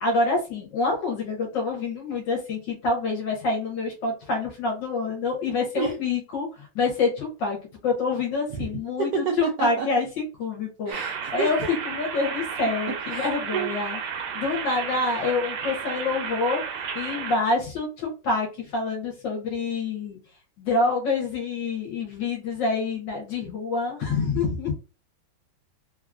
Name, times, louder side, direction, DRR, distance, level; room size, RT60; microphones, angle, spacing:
voice 1, 0.0-14.0 14.3-20.2 20.6-24.7, left 3 dB, 70° left, -1 dB, 1.4 m, -27 dB
voice 2, 9.0-9.9 10.9-11.5 13.1-13.3 13.5-13.7, right 4 dB, 75° right, 1 dB, 0.8 m, -28 dB
sound 1, 10.9-17.4, right 7 dB, 90° right, 1.5 m, -33 dB
3.5 x 2.3 x 2.4 m, 0.33 s
omnidirectional pair, 2.2 m